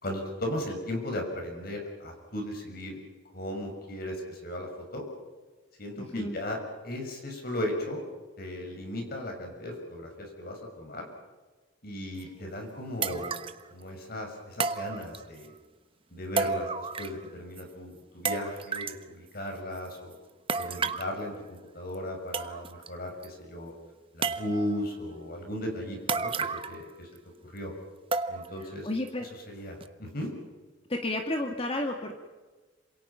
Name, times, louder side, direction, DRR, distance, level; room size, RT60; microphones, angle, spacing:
voice 1, 0.0-3.0 3.3-5.1 5.8-6.6 6.8-8.1 8.4-11.1 11.8-13.3 13.7-15.5 16.1-20.1 20.6-23.7 24.1-27.1 27.4-27.7 28.3-28.9 29.5-30.3, left 1 dB, 55° left, 2 dB, 6.6 m, -36 dB
voice 2, 6.0-6.4 20.8-20.9 28.6-29.3 30.9-32.2, left 1 dB, 30° left, 3 dB, 2.0 m, -32 dB
sound 1, 12.2-12.3 13.0-13.6 14.6-15.5 16.4-17.3 17.6-17.7 18.3-19.0 20.5-21.1 21.9-22.0 22.3-22.9 23.2-23.3 24.2-24.8 26.1-26.9 27.2-27.3 28.1-28.6 29.1-29.2 29.8-29.9, right 4 dB, 30° right, 1.1 m, -32 dB
27.5 x 27.0 x 5.8 m, 1.3 s
head